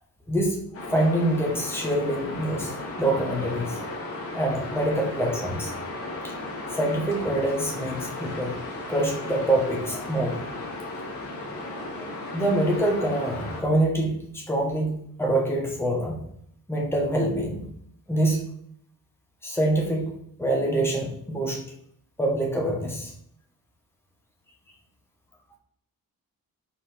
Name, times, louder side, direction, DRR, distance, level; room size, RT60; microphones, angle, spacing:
sound 1, 0.7-13.6, left 2 dB, 40° left, 1.8 m, -35 dB
voice 1, 0.8-2.7 3.0-3.8 4.3-5.7 6.2-6.3 6.7-8.6 8.9-10.4 12.3-16.2 16.7-17.7 18.1-18.4 19.4-20.1 20.4-21.6 22.2-23.1, right 1 dB, 5° left, -2 dB, 1.5 m, -25 dB
5.8 x 4.5 x 4.4 m, 0.67 s
wide cardioid pair, 170°, 36 cm